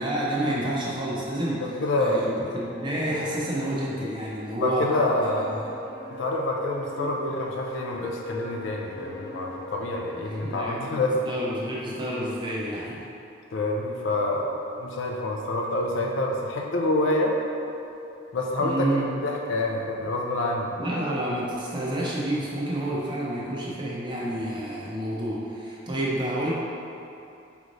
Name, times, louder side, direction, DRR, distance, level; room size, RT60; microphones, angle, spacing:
voice 1, 0.0-4.9 5.4-5.7 7.0-7.1 10.3-13.0 18.6-19.1 20.8-26.5, right 1 dB, 20° right, -6 dB, 0.6 m, -29 dB
voice 2, 1.6-2.2 4.6-5.5 6.1-11.2 13.5-14.5 14.8-17.3 18.3-20.8, left 2 dB, 65° left, 0 dB, 0.4 m, -27 dB
sound 1, 2.6-10.7, left 2 dB, 60° right, 0.8 m, -39 dB
4.8 x 3.0 x 2.6 m, 2.8 s
head